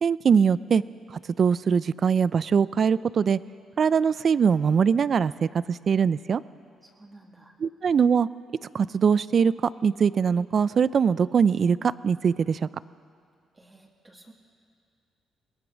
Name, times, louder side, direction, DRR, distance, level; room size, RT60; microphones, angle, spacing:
voice 1, 0.0-0.8 1.4-3.4 3.8-6.4 7.6-8.3 8.7-9.5 9.8-12.7, right 6 dB, 50° right, 18 dB, 0.5 m, -22 dB
voice 2, 6.8-7.5 13.5-14.3, right 2 dB, 20° right, -1 dB, 2.3 m, -53 dB
22.5 x 18.0 x 6.3 m, 2.3 s
cardioid pair, 90°, 0 cm